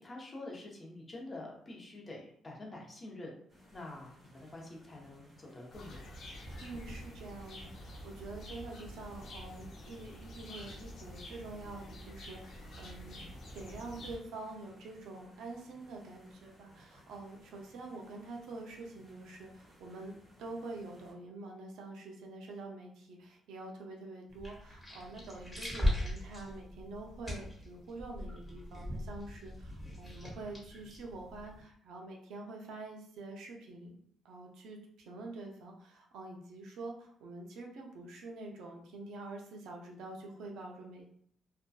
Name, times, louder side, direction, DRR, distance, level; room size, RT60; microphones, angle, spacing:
voice 1, 0.0-3.3 3.7-6.2, left 2 dB, 30° left, -1 dB, 0.7 m, -47 dB
sound 1, 3.5-21.1, equal, 20° right, 1.3 m, -61 dB
sound 2, 5.7-14.2, equal, 65° left, 0.6 m, -48 dB
voice 2, 6.6-13.2 13.5-34.0 34.2-41.0, right 2 dB, 85° right, 1 dB, 0.5 m, -46 dB
sound 3, 24.3-31.6, left 1 dB, 5° left, 1.1 m, -39 dB
2.5 x 2.2 x 2.3 m, 0.65 s
cardioid pair, 90°, 0 cm